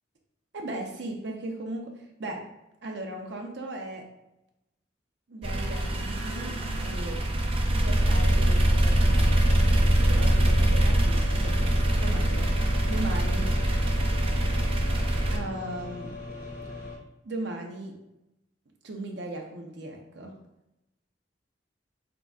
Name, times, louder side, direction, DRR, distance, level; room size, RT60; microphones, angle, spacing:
voice 1, 0.5-1.9 2.2-2.5 2.8-4.1 5.3-6.6 6.8-7.2 7.8-13.5 15.3-16.1 17.2-17.9 18.8-20.3, right 1 dB, 75° right, 2 dB, 0.7 m, -37 dB
sound 1, 5.4-15.4, right 1 dB, 30° right, 0.5 m, -23 dB
sound 2, 7.9-17.0, left 2 dB, 10° right, 1.4 m, -39 dB
4.1 x 3.9 x 2.3 m, 0.89 s
head